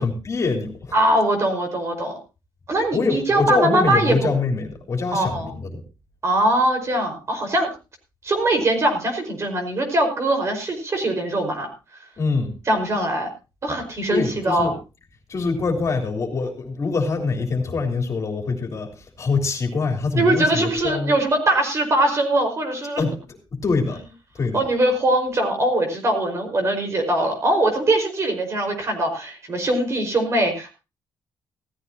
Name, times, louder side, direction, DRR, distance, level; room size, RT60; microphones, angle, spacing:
voice 1, 0.0-0.9 2.9-5.7 12.2-12.6 14.1-14.7 15.3-21.2 23.0-23.1 23.5-24.0 24.3-24.6, left 4 dB, 40° left, 3 dB, 3.4 m, -24 dB
voice 2, 0.9-2.2 2.7-4.3 5.1-5.5 6.2-7.7 8.2-11.7 12.7-13.3 13.6-14.7 20.2-23.0 24.5-30.7, right 1 dB, 35° right, 4 dB, 5.0 m, -21 dB
16.5 x 14.0 x 2.9 m, 0.30 s
cardioid pair, 140°, 8 cm